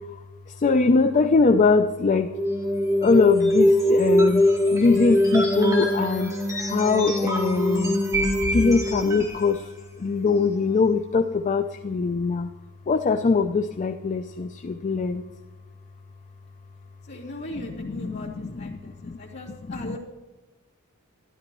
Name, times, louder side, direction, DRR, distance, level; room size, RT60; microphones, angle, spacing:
voice 1, 0.6-2.3 3.0-4.4 4.7-6.3 6.7-8.0 8.5-9.7 10.0-12.5 12.9-15.2 17.6-19.2 19.7-20.0, left 4 dB, 35° left, 7 dB, 0.4 m, -22 dB
sound 1, 2.3-9.5, left 1 dB, 15° right, 1.9 m, -22 dB
voice 2, 17.1-20.0, left 1 dB, 55° left, -4 dB, 2.7 m, -39 dB
12.5 x 12.0 x 3.0 m, 1.1 s
head